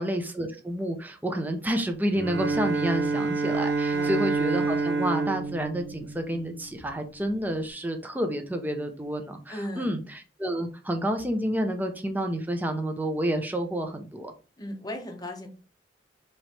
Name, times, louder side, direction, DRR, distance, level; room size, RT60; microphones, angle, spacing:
voice 1, 0.0-10.0 10.4-14.3, equal, 10° right, 5 dB, 0.6 m, -29 dB
Bowed string instrument, 2.1-6.7, right 4 dB, 75° right, 0.7 m, -28 dB
voice 2, 9.5-10.0 14.6-15.5, left 1 dB, 20° left, 3 dB, 0.8 m, -36 dB
4.5 x 3.0 x 3.3 m, 0.35 s
head